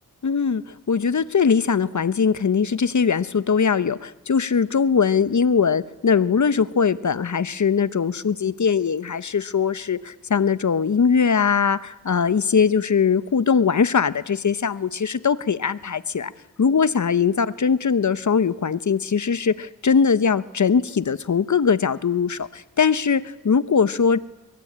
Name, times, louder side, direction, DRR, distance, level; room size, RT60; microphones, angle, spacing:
voice 1, 0.2-0.6 0.9-16.3 16.6-24.2, left 6 dB, 55° left, 16 dB, 1.0 m, -21 dB
24.0 x 23.5 x 8.8 m, 1.0 s
cardioid pair, 65°, 34 cm